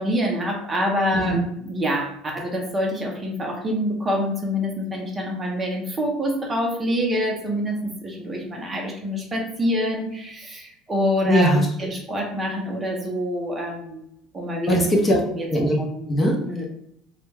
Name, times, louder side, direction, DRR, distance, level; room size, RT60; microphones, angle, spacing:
voice 1, 0.0-1.4 1.6-11.5 11.8-14.0 14.3-14.8 15.4-15.5 15.8-16.1 16.5-16.6, equal, 20° right, 0 dB, 0.6 m, -26 dB
voice 2, 11.2-11.7 14.7-15.2 15.5-15.8 16.1-16.6, equal, 25° left, -1 dB, 0.6 m, -19 dB
2.3 x 2.1 x 3.2 m, 0.74 s
supercardioid pair, 120°, 0 cm